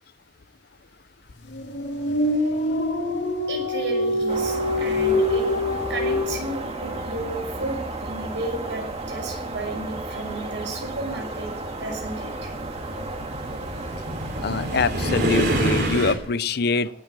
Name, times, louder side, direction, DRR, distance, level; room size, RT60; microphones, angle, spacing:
sound 1, 1.5-6.3, left 1 dB, 80° left, 2.6 m, -24 dB
voice 1, 3.5-5.5 5.9-11.5 11.8-12.5, right 2 dB, 75° right, 2 dB, 6.0 m, -33 dB
sound 2, 4.3-15.3, right 2 dB, 35° right, 2.1 m, -33 dB
sound 3, 10.2-16.1, right 1 dB, 60° right, 3.4 m, -27 dB
voice 2, 14.4-16.9, left 4 dB, 60° left, 16 dB, 0.7 m, -24 dB
18.0 x 9.2 x 7.7 m, 0.82 s
head